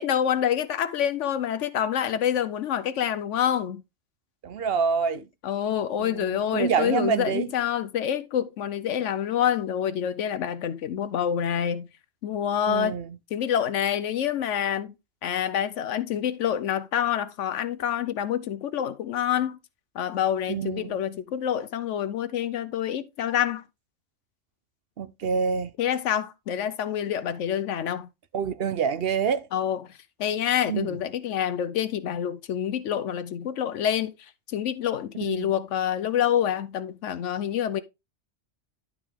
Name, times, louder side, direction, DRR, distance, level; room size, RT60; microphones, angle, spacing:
voice 1, 0.0-3.8 5.1-11.9 12.2-13.0 13.3-14.9 15.2-19.6 19.9-23.6 25.8-28.1 29.5-29.8 30.2-37.8, left 9 dB, 80° left, 1.0 m, -27 dB
voice 2, 4.4-5.2 6.0-7.5 12.7-13.2 20.5-21.0 25.0-25.7 28.3-29.4 30.7-31.0 35.3-35.5, right 6 dB, 60° right, 0.8 m, -27 dB
11.5 x 4.7 x 3.6 m
omnidirectional pair, 1.2 m